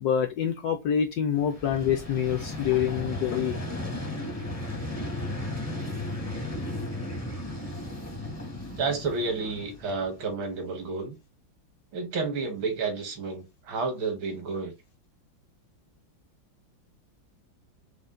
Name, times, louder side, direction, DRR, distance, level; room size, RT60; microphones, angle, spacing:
voice 1, 0.0-3.5, left 8 dB, 75° left, 0.9 m, -26 dB
Vehicle, 1.4-10.3, left 1 dB, 20° left, 0.4 m, -35 dB
voice 2, 8.7-11.2 11.9-14.7, right 4 dB, 80° right, 1.9 m, -31 dB
5.2 x 2.1 x 3.6 m
omnidirectional pair, 2.1 m